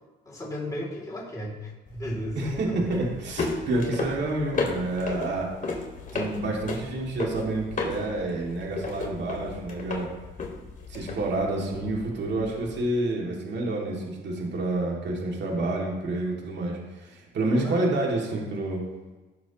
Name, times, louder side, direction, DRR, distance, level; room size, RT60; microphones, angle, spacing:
voice 1, 0.2-2.9 17.4-17.9, equal, 15° left, -3 dB, 2.8 m, -35 dB
sound 1, 1.9-12.8, left 4 dB, 45° left, 2.2 m, -35 dB
voice 2, 2.4-5.8 6.1-10.1 10.9-18.8, right 2 dB, 60° right, -2 dB, 2.3 m, -29 dB
17.5 x 6.1 x 3.0 m, 1.2 s
cardioid pair, 90°, 20 cm